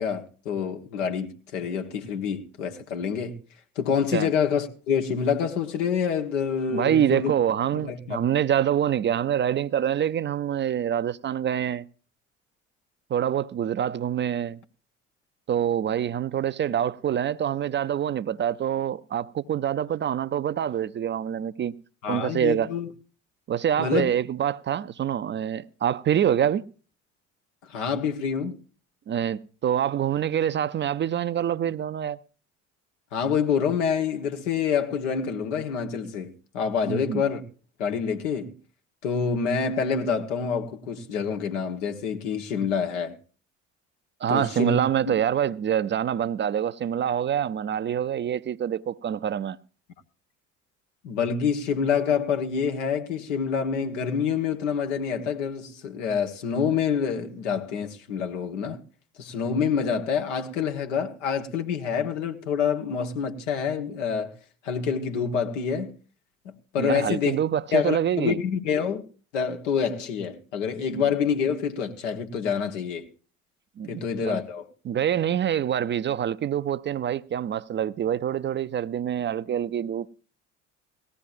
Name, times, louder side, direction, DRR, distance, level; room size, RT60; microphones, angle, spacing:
voice 1, 0.0-3.4 3.8-7.3 7.7-8.2 22.0-22.9 23.8-24.1 27.7-28.6 33.1-37.4 37.8-38.5 39.0-43.2 44.3-44.8 45.1-45.2 51.0-58.8 59.2-64.4 64.6-65.9 66.4-67.3 67.7-69.0 69.3-73.1 73.9-74.6, left 6 dB, 75° left, 1.2 m, -27 dB
voice 2, 6.7-11.8 13.1-14.6 15.5-21.7 22.1-22.7 23.5-26.6 29.1-32.2 36.9-37.2 44.2-49.6 66.8-68.4 70.9-71.0 73.8-74.4 74.9-80.1, right 9 dB, 30° right, 0.5 m, -26 dB
18.5 x 15.0 x 2.6 m
figure-of-eight pair, 55°, 37 cm